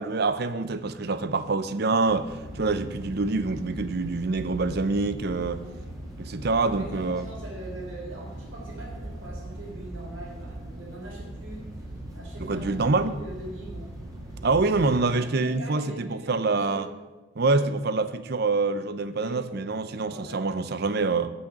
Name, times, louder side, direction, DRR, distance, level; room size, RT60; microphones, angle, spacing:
voice 1, 0.0-5.6 6.2-7.2 12.4-13.2 14.4-16.9 17.4-21.3, right 3 dB, 50° right, 0.6 m, -26 dB
sound 1, 2.1-15.0, right 1 dB, 15° right, 2.3 m, -40 dB
voice 2, 6.6-11.7 12.1-13.9 14.6-16.9 19.2-19.4 19.8-21.1, right 1 dB, 75° right, 3.5 m, -42 dB
8.7 x 6.4 x 8.0 m
head